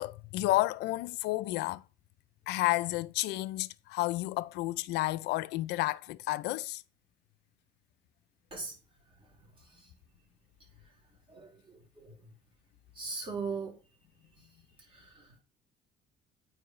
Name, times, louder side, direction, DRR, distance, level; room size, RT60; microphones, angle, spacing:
voice 1, 0.0-1.8 2.5-6.8, left 18 dB, 85° left, 0.4 m, -31 dB
voice 2, 11.3-12.1 12.9-13.7 14.9-15.4, right 4 dB, 30° right, 4.5 m, -39 dB
9.3 x 4.6 x 3.2 m
cardioid pair, 110°, 17 cm